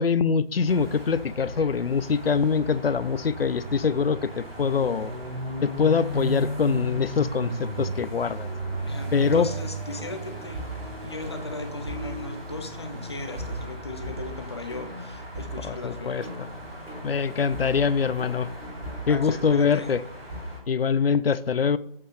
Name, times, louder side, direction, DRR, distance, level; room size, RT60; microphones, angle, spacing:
voice 1, 0.0-5.1 5.6-8.5 9.1-9.5 15.6-16.2 17.0-18.5 19.1-20.0 20.7-21.8, left 6 dB, 75° left, 16 dB, 0.5 m, -24 dB
sound 1, 0.7-20.6, right 1 dB, 85° right, 3.1 m, -36 dB
sound 2, 8.6-20.4, right 1 dB, 10° right, 1.7 m, -40 dB
voice 2, 8.8-10.6 11.0-16.3 19.1-19.9, left 2 dB, 25° left, 5 dB, 0.7 m, -37 dB
7.6 x 3.3 x 5.8 m, 0.66 s
figure-of-eight pair, 155°, 30 cm